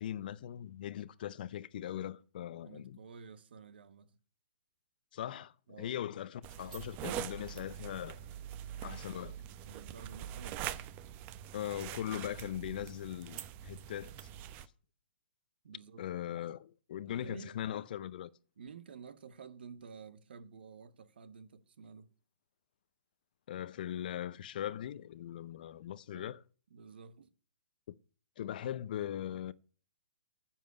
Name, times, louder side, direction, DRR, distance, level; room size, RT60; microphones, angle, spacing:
voice 1, 0.0-3.0 5.1-8.2 8.8-9.4 11.5-14.3 16.0-18.3 23.5-26.4 27.9-28.0 28.4-29.5, left 11 dB, 50° left, 0.7 m, -40 dB
voice 2, 2.6-4.2 5.7-6.0 8.7-9.0 9.7-10.9 15.6-16.1 17.1-17.6 18.6-22.1 26.1-26.4 26.7-27.3, right 6 dB, 65° right, 1.2 m, -51 dB
sound 1, 6.4-14.7, right 11 dB, 30° right, 0.8 m, -44 dB
9.9 x 7.4 x 8.2 m
figure-of-eight pair, 125°, 6 cm